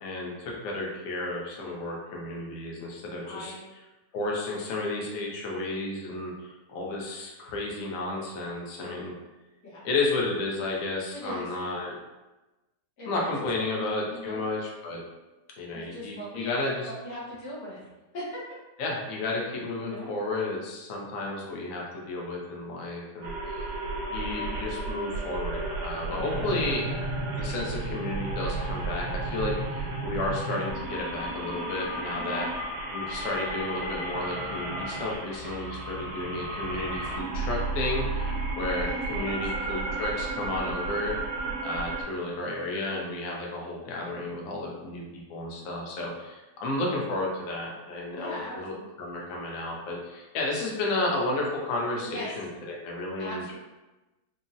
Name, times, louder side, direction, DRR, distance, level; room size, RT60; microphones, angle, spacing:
voice 1, 0.0-3.5 4.1-9.1 9.8-12.0 13.1-15.0 15.6-16.9 18.8-23.7 24.1-26.9 27.2-32.5 32.9-41.2 41.6-48.7 49.0-53.6, left 2 dB, 65° left, -2 dB, 0.9 m, -32 dB
voice 2, 3.2-3.7 4.2-4.3 9.6-9.9 11.1-11.5 13.0-13.3 13.7-14.4 15.7-17.8 18.1-18.4 19.8-20.1 32.2-32.5 38.8-39.4 48.1-49.2 52.0-52.3 53.2-53.6, equal, 90° left, -8 dB, 1.6 m, -39 dB
sound 1, 23.2-42.0, right 2 dB, 75° right, 1.1 m, -33 dB
3.7 x 2.0 x 2.5 m, 1.1 s
omnidirectional pair, 1.7 m